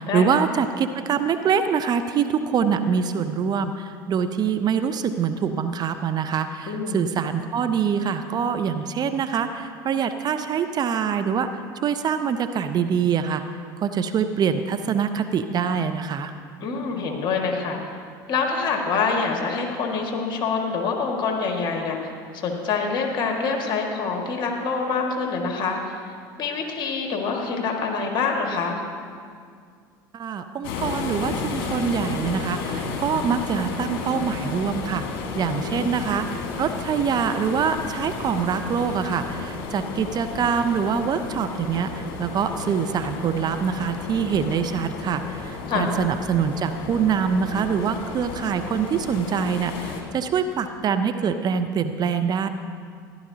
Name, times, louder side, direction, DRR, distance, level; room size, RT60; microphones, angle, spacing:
voice 1, 0.0-11.5 11.8-13.4 13.8-16.3 30.1-35.0 35.4-36.3 36.6-52.5, right 7 dB, 40° right, 9 dB, 0.6 m, -24 dB
voice 2, 6.7-7.1 16.6-17.8 18.3-26.0 26.4-28.8 35.5-35.9 45.7-45.9, left 4 dB, 45° left, 1 dB, 1.9 m, -26 dB
sound 1, 30.6-50.0, left 4 dB, 65° left, 1.7 m, -33 dB
14.5 x 11.5 x 2.8 m, 2.2 s
hypercardioid pair, 80°, 11 cm